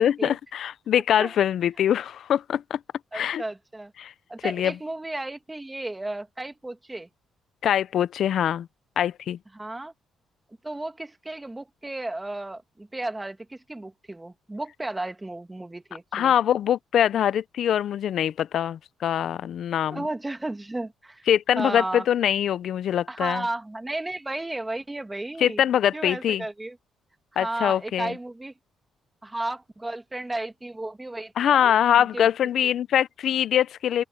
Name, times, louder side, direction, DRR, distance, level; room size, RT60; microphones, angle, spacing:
voice 1, 0.0-2.8 3.1-3.4 4.0-4.1 4.4-4.7 7.6-8.7 9.0-9.4 16.1-20.0 21.3-23.4 25.4-26.4 27.4-28.1 31.4-34.0, left 10 dB, 65° left, 0.6 m, -23 dB
voice 2, 3.1-3.9 4.3-7.1 9.5-9.9 10.6-16.3 19.8-21.2 21.5-22.1 23.1-25.6 25.9-26.8 27.3-28.5 29.2-32.3 32.6-32.7, right 2 dB, 15° right, 1.9 m, -34 dB
open air
cardioid pair, 90°, 0 cm